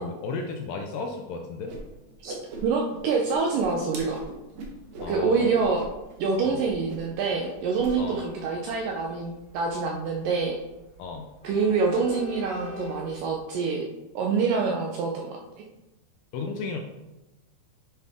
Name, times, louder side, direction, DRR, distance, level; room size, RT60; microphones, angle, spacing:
voice 1, 0.0-1.7 5.0-5.5 6.4-6.6 8.0-8.2 11.0-11.3 16.3-16.8, left 4 dB, 80° left, 3 dB, 2.1 m, -34 dB
Whoosh swoosh swish, 1.7-1.8 2.1-3.0 3.2-5.1 5.5-5.9 6.1-6.3 6.6-7.1 7.4-7.9, right 3 dB, 60° right, 2.0 m, -39 dB
voice 2, 2.6-4.2 5.1-5.8 6.2-10.6 11.4-13.8 14.2-15.3, right 4 dB, 75° right, 0 dB, 2.1 m, -26 dB
Train, 4.7-13.3, equal, 30° left, 1.2 m, -46 dB
10.0 x 5.5 x 3.6 m, 1.0 s
omnidirectional pair, 4.5 m